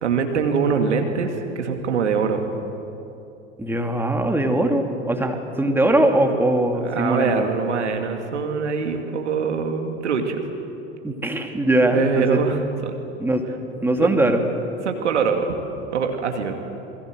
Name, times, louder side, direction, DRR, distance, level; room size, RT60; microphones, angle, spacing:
voice 1, 0.0-2.4 6.8-10.5 11.9-12.9 14.0-14.2 14.8-15.5 15.9-16.5, right 5 dB, 75° right, 5 dB, 2.5 m, -23 dB
voice 2, 3.6-7.5 11.0-12.4 13.2-13.4 13.8-14.4, right 1 dB, 5° right, 4 dB, 2.6 m, -21 dB
27.5 x 22.0 x 7.8 m, 2.8 s
figure-of-eight pair, 80°, 35 cm